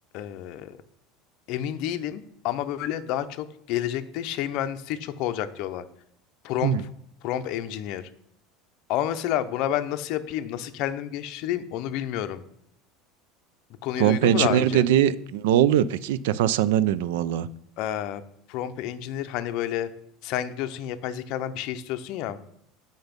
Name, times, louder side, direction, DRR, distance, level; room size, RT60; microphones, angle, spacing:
voice 1, 0.1-0.8 1.5-5.8 6.4-6.7 7.2-8.1 8.9-12.4 13.8-14.8 17.8-18.2 18.5-19.9 20.2-22.4, left 11 dB, 50° left, 10 dB, 0.6 m, -29 dB
voice 2, 14.0-17.5, right 11 dB, 85° right, 17 dB, 0.4 m, -21 dB
8.0 x 5.3 x 5.2 m, 0.73 s
cardioid pair, 165°, 0 cm